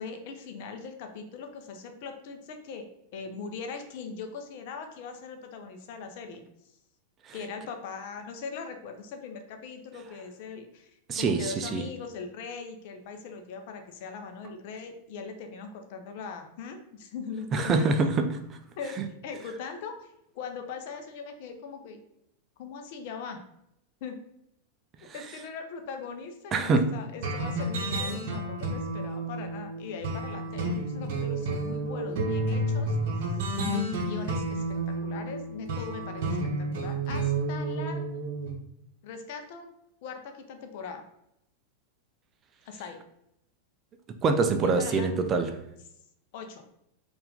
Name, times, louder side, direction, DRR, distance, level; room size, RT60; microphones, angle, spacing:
voice 1, 0.0-2.9 3.1-6.4 7.3-18.0 18.8-22.0 22.6-23.4 24.0-24.2 25.1-33.0 34.0-38.0 39.0-39.7 40.0-41.0 42.7-43.0 44.6-45.1 46.3-46.6, left 5 dB, 50° left, 0.6 m, -40 dB
voice 2, 11.1-11.8 17.5-18.6 19.0-19.1 25.0-25.2 26.5-27.0 44.2-45.6, right 4 dB, 25° right, 0.4 m, -25 dB
sound 1, 27.2-38.5, right 2 dB, 50° right, 0.8 m, -31 dB
4.4 x 2.5 x 3.5 m
figure-of-eight pair, 90°, 0 cm